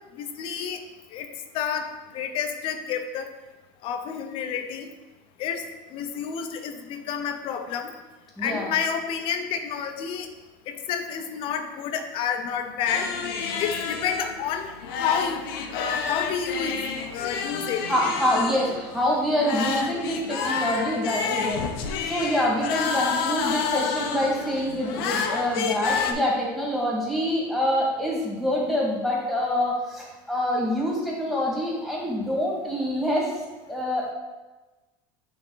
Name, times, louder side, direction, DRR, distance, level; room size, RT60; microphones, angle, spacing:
voice 1, 0.2-0.8 1.1-1.3 1.5-1.9 2.1-3.3 3.8-4.9 5.4-5.6 5.9-7.9 8.4-10.3 10.7-13.1 13.6-14.7 15.0-15.4 15.7-16.8 17.1-17.9, left 7 dB, 50° left, 7 dB, 0.6 m, -29 dB
voice 2, 8.4-8.7 17.9-33.3 33.7-34.1, left 1 dB, ahead, -4 dB, 1.7 m, -26 dB
sound 1, 12.9-26.1, left 5 dB, 85° left, 0.7 m, -29 dB
7.6 x 3.5 x 3.8 m, 1.2 s
supercardioid pair, 135°, 12 cm